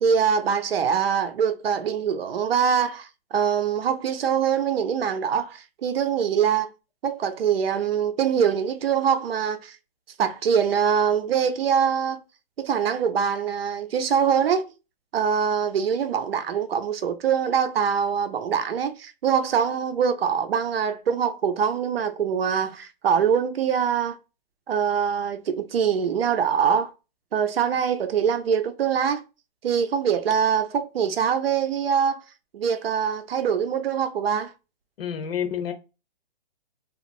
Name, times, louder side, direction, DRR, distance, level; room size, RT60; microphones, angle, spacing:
voice 1, 0.0-6.7 7.0-9.8 10.2-12.2 12.6-14.7 15.1-24.2 24.7-26.9 27.3-29.2 29.6-32.2 32.5-34.5, right 7 dB, 80° right, 0.6 m, -23 dB
voice 2, 35.0-35.7, left 8 dB, 85° left, 0.7 m, -28 dB
3.0 x 2.5 x 2.5 m
hypercardioid pair, 180°, 29 cm